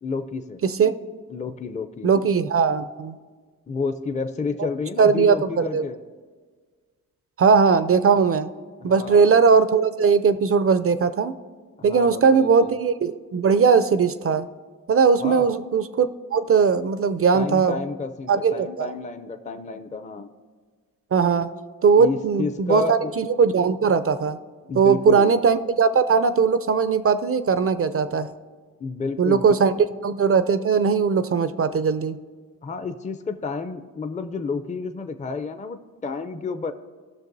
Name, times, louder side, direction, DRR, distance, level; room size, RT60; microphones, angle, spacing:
voice 1, 0.0-0.6 1.3-2.1 3.7-6.0 8.8-9.4 11.8-12.8 15.2-15.5 17.3-20.3 22.0-23.1 24.7-25.3 28.8-29.5 32.6-36.7, left 4 dB, 20° left, 9 dB, 0.5 m, -30 dB
voice 2, 0.6-1.0 2.0-3.1 5.0-5.9 7.4-8.5 8.8-11.4 11.8-14.5 14.9-17.8 18.3-18.9 21.1-21.5 21.8-24.4 24.8-28.3 29.2-29.7 30.0-32.2, right 5 dB, 40° right, 13 dB, 0.4 m, -19 dB
16.0 x 6.2 x 2.6 m, 1.5 s
cardioid pair, 65°, 36 cm